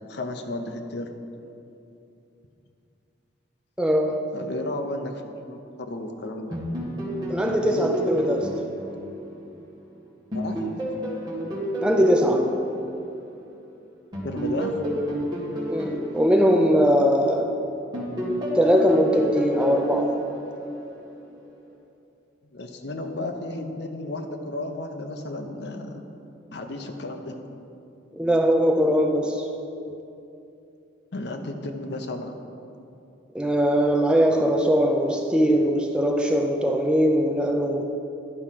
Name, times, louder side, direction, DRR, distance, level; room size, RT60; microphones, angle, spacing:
voice 1, 0.1-1.1 4.3-6.6 10.3-10.6 14.2-14.8 22.5-26.1 26.5-27.4 31.1-32.3, left 2 dB, 60° left, 5 dB, 0.7 m, -33 dB
voice 2, 3.8-4.3 7.3-8.6 11.8-12.6 15.7-17.6 18.5-20.2 28.1-29.5 33.3-37.8, equal, 5° right, 3 dB, 0.4 m, -21 dB
sound 1, 6.5-9.8 10.3-13.6 14.1-17.4 17.9-21.2, equal, 20° right, 1.8 m, -31 dB
11.0 x 4.8 x 5.8 m, 2.7 s
head